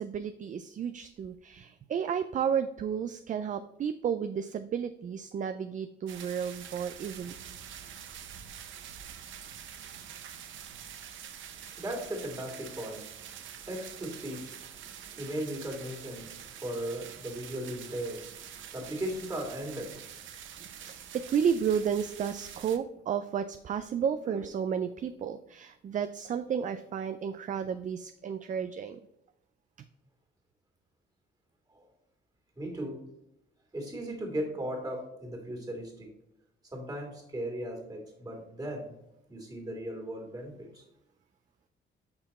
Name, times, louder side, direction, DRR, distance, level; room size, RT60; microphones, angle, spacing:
voice 1, 0.0-7.3 20.6-29.0, right 7 dB, 40° right, 10 dB, 0.4 m, -32 dB
sound 1, 6.1-22.8, right 9 dB, 75° right, 0.7 m, -46 dB
voice 2, 11.5-20.1 24.3-24.5 31.7-31.9 32.6-33.0 33.7-36.1 36.6-38.9 39.3-40.8, right 1 dB, 20° right, 1 dB, 2.4 m, -38 dB
5.7 x 4.5 x 4.2 m, 0.85 s
cardioid pair, 90°, 20 cm